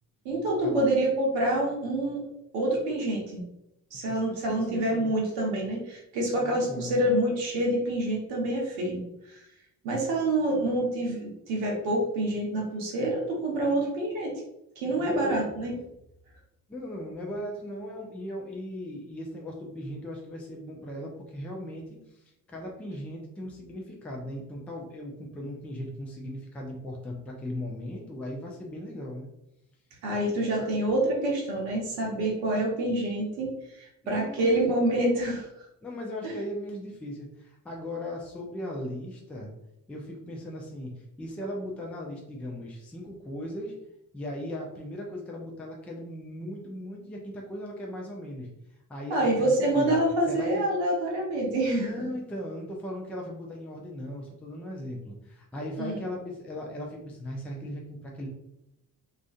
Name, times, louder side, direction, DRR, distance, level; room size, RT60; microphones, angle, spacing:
voice 1, 0.2-2.2 2.5-3.4 3.9-9.4 9.8-14.3 14.8-15.7 30.0-35.5 36.2-36.4 49.1-51.9 55.8-56.0, right 1 dB, 65° right, -2 dB, 0.8 m, -27 dB
voice 2, 4.3-5.1 6.3-7.0 15.0-15.5 16.7-29.3 30.5-30.7 34.0-34.8 35.8-39.5 39.9-40.9 41.2-43.7 44.1-48.5 48.9-50.0 50.3-50.7 51.8-58.3, left 1 dB, 5° left, -1 dB, 0.3 m, -38 dB
2.4 x 2.3 x 2.3 m, 0.85 s
figure-of-eight pair, 45°, 49 cm